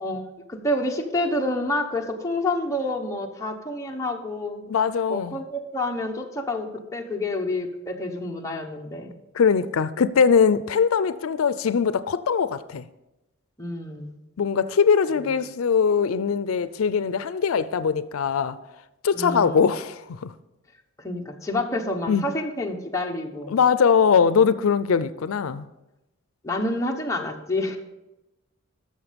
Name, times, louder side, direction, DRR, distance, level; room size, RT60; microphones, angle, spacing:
voice 1, 0.0-4.6 5.1-9.1 13.6-14.1 15.2-15.3 19.1-19.6 21.0-23.5 26.4-27.8, left 1 dB, 15° left, 1.1 m, -28 dB
voice 2, 4.7-5.3 9.3-12.8 14.4-18.6 19.0-20.3 22.1-22.2 23.5-25.7, left 6 dB, 85° left, 0.4 m, -21 dB
13.0 x 6.4 x 5.1 m
head